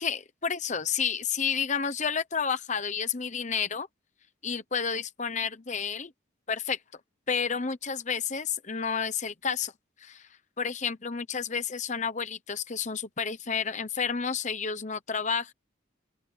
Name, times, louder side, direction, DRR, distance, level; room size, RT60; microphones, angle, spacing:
voice 1, 0.0-3.9 4.4-6.1 6.5-6.8 7.3-9.7 10.0-10.3 10.6-15.5, left 6 dB, 40° left, 1.0 m, -30 dB
open air
head